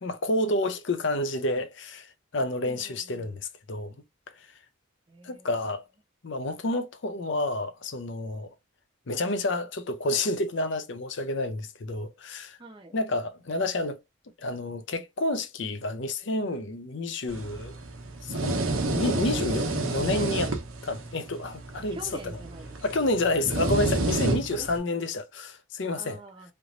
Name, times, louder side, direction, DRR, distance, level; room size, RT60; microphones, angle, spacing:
voice 1, 0.0-4.0 5.2-5.9 6.2-8.5 9.1-12.6 12.9-14.0 14.4-17.7 18.2-20.5 20.8-22.0 22.2-22.3 22.8-26.2, left 2 dB, 60° left, 0.6 m, -29 dB
voice 2, 2.6-3.3 5.1-5.5 12.6-13.0 21.8-22.7 24.5-24.7 26.0-26.5, right 2 dB, 25° right, 0.6 m, -45 dB
sound 1, 17.3-24.8, right 2 dB, 85° right, 1.0 m, -30 dB
3.3 x 2.9 x 2.5 m
head